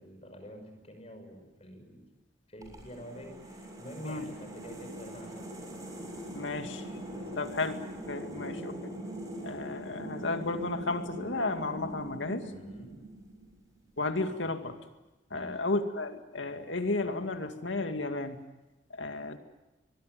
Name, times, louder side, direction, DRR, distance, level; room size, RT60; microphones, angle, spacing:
voice 1, 0.0-2.1 2.5-5.5 7.1-7.6 8.2-8.5 12.5-13.0 15.3-15.6, equal, 35° left, 5 dB, 6.0 m, -47 dB
sound 1, 2.6-13.7, right 1 dB, 20° right, 6.9 m, -42 dB
voice 2, 6.3-6.8 7.4-7.8 8.1-8.7 9.4-12.5 14.0-14.8 15.3-18.4 18.9-19.4, left 2 dB, 80° left, 7 dB, 2.3 m, -33 dB
24.5 x 22.0 x 9.3 m, 1.1 s
head